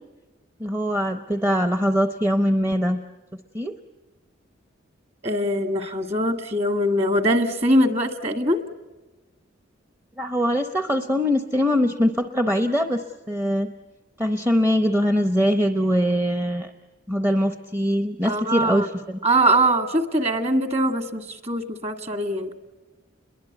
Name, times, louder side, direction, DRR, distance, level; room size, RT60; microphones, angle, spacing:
voice 1, 0.6-3.0 3.5-3.7 10.2-13.7 14.2-16.7 17.1-19.2, equal, 10° right, 7 dB, 0.8 m, -22 dB
voice 2, 5.2-8.6 18.2-18.9 19.2-22.5, right 1 dB, 30° right, 7 dB, 1.8 m, -22 dB
29.5 x 22.5 x 8.2 m, 1.2 s
head